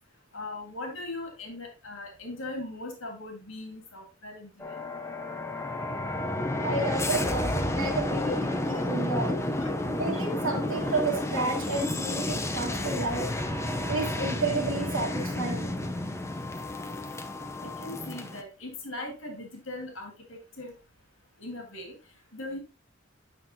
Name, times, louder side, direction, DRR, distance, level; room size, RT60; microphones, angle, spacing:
voice 1, 0.3-4.8 9.6-9.7 17.6-20.7 21.4-22.0 22.3-22.6, left 2 dB, 85° left, 3 dB, 2.0 m, -39 dB
sound 1, 4.6-18.4, left 1 dB, 15° left, 0.7 m, -31 dB
voice 2, 6.6-9.4 9.9-13.3 13.9-15.7, right 3 dB, 80° right, -4 dB, 2.0 m, -31 dB
8.9 x 5.7 x 2.9 m, 0.31 s
head